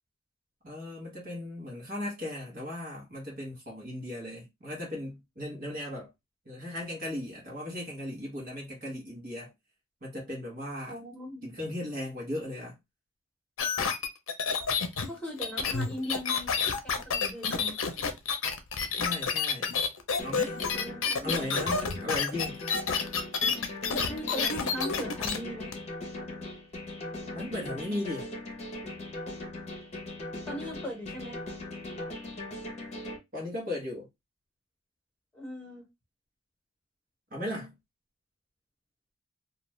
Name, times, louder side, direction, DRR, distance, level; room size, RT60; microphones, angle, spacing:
voice 1, 0.6-6.1 6.4-9.5 10.0-11.0 11.4-12.8 18.9-19.8 20.2-20.6 21.2-22.6 27.3-28.3 33.3-34.1 37.3-37.8, left 1 dB, 40° right, 1.1 m, -37 dB
voice 2, 10.9-11.4 15.0-16.5 16.8-17.8 20.7-21.3 24.1-25.7 30.4-31.4 35.3-35.9, left 1 dB, 5° left, 1.3 m, -39 dB
sound 1, 13.6-25.4 25.7-25.8, left 5 dB, 70° left, 0.6 m, -29 dB
sound 2, 20.2-33.2, left 1 dB, 30° left, 0.8 m, -40 dB
2.4 x 2.4 x 3.1 m
head